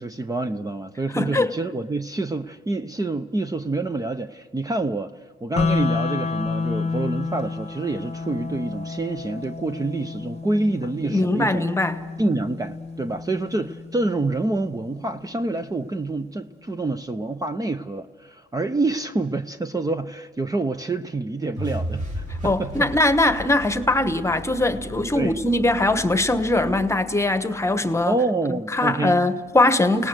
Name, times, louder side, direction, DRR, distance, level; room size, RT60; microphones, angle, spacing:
voice 1, 0.0-5.1 5.4-11.7 12.2-22.9 25.1-25.4 28.1-29.2, right 2 dB, 20° right, 0.8 m, -27 dB
voice 2, 1.1-1.5 11.1-12.0 22.4-28.2 28.7-30.1, left 2 dB, 15° left, 1.3 m, -21 dB
sound 1, 5.6-15.5, left 4 dB, 30° left, 1.0 m, -30 dB
sound 2, 21.6-27.7, equal, 40° right, 5.6 m, -35 dB
29.5 x 18.5 x 6.3 m
cardioid pair, 90°, 20 cm